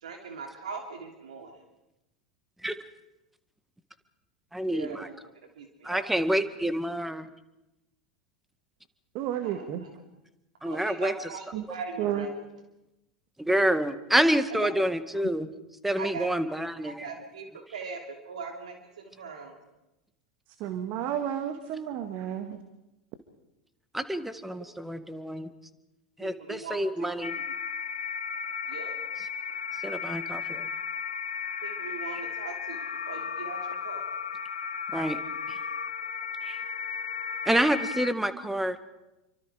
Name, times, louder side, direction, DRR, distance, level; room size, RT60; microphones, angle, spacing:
voice 1, 0.0-1.5 4.7-5.2 5.6-6.1 9.4-10.0 10.6-12.3 14.6-14.7 16.0-16.3 16.8-17.5 17.7-19.6 26.2-27.2 28.7-28.9 31.6-34.0, right 5 dB, 75° right, 3 dB, 2.9 m, -40 dB
voice 2, 4.5-5.1 5.8-7.3 10.6-11.3 13.4-15.5 15.8-17.1 23.9-25.5 26.2-27.3 29.8-30.7 34.9-35.2 35.5-35.6 36.4-36.6 37.5-38.8, right 1 dB, 5° right, 11 dB, 1.8 m, -28 dB
voice 3, 9.2-9.8 11.5-11.6 12.0-12.3 20.6-22.6, right 10 dB, 50° right, 8 dB, 1.9 m, -31 dB
sound 1, 27.2-38.1, left 6 dB, 80° left, 0.9 m, -34 dB
28.0 x 24.5 x 4.9 m, 0.94 s
figure-of-eight pair, 85°, 4 cm